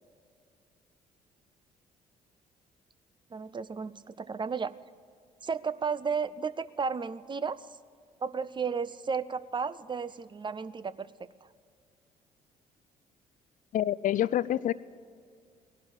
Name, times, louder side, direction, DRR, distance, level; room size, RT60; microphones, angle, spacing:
voice 1, 3.3-4.7 5.4-7.7 8.2-11.3, right 5 dB, 25° right, 16 dB, 0.6 m, -33 dB
voice 2, 13.7-14.7, left 12 dB, 45° left, 19 dB, 0.5 m, -27 dB
17.5 x 11.5 x 6.9 m, 2.2 s
figure-of-eight pair, 50°, 19 cm